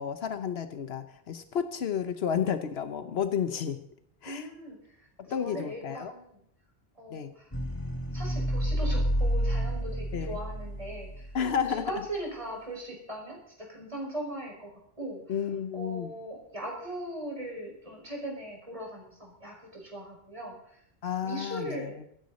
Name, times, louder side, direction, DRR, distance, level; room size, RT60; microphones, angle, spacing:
voice 1, 0.0-3.8 4.2-4.5 5.3-6.1 7.1-7.3 10.1-10.4 11.3-11.9 15.3-16.1 21.0-21.9, left 8 dB, 85° left, 9 dB, 1.1 m, -31 dB
voice 2, 4.2-4.8 5.3-6.4 7.0-7.5 8.1-11.3 11.7-15.2 15.7-20.8 21.2-22.0, right 1 dB, 35° right, -2 dB, 5.6 m, -39 dB
sound 1, 7.5-11.6, equal, 20° left, 2.2 m, -30 dB
26.5 x 9.5 x 4.1 m, 0.69 s
omnidirectional pair, 1.0 m